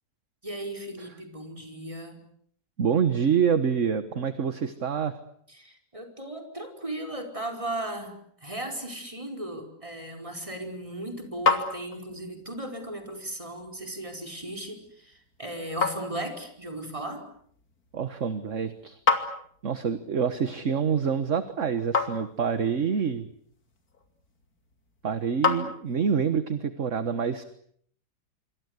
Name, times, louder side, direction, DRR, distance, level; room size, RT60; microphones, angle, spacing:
voice 1, 0.4-2.3 5.5-17.3, right 1 dB, 15° right, 4 dB, 5.2 m, -37 dB
voice 2, 2.8-5.2 17.9-19.0 19.6-23.3 25.0-27.4, right 7 dB, 45° right, 11 dB, 1.6 m, -26 dB
sound 1, 10.5-26.3, left 4 dB, 55° left, 3.4 m, -34 dB
27.0 x 25.0 x 8.2 m, 0.64 s
omnidirectional pair, 2.0 m